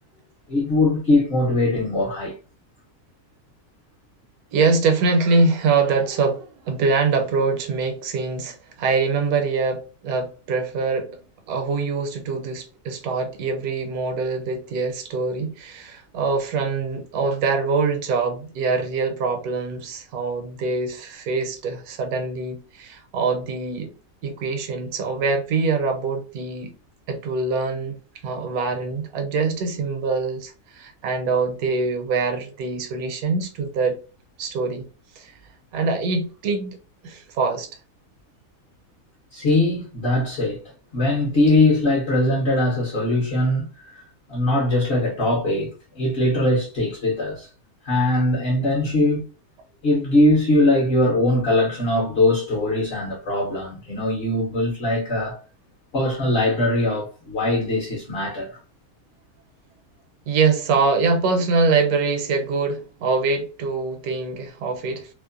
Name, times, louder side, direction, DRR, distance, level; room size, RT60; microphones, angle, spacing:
voice 1, 0.5-2.3 39.3-40.6 40.9-44.0 44.3-47.5 47.8-49.2 49.8-55.4 55.9-58.6, left 1 dB, 45° left, 0.9 m, -21 dB
voice 2, 4.5-11.2 11.5-23.9 24.2-26.7 27.1-27.9 28.2-34.0 34.4-34.8 35.2-35.4 35.7-36.8 37.0-37.7 60.3-65.1, right 4 dB, 70° right, 1.1 m, -24 dB
2.8 x 2.1 x 2.4 m
omnidirectional pair, 1.7 m